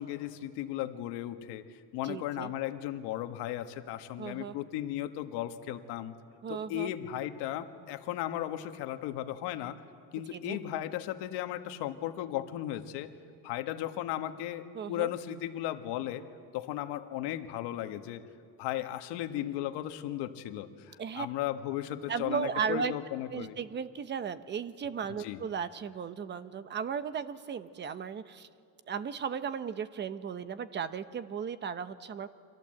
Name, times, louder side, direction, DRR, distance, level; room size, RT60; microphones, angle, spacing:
voice 1, 0.0-6.1 6.5-9.8 10.1-13.1 13.4-16.2 16.5-18.3 18.6-23.5 25.2-25.4, left 13 dB, 70° left, 8 dB, 1.7 m, -36 dB
voice 2, 2.0-2.5 4.2-4.6 6.4-6.9 10.3-10.6 14.7-15.1 21.0-21.3 22.1-22.9 23.3-28.5 28.9-32.3, right 7 dB, 25° right, 13 dB, 0.8 m, -35 dB
29.5 x 25.0 x 7.8 m, 2.2 s
cardioid pair, 165°, 42 cm